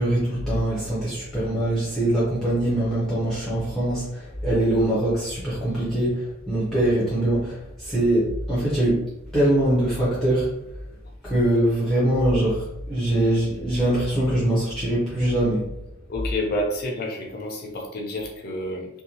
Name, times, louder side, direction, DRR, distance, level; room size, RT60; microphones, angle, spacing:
voice 1, 0.0-9.1 9.3-10.5 11.2-15.6, right 1 dB, ahead, -9 dB, 0.6 m, -23 dB
voice 2, 16.1-18.9, left 1 dB, 45° left, 0 dB, 0.5 m, -29 dB
2.5 x 2.1 x 2.9 m, 0.84 s
head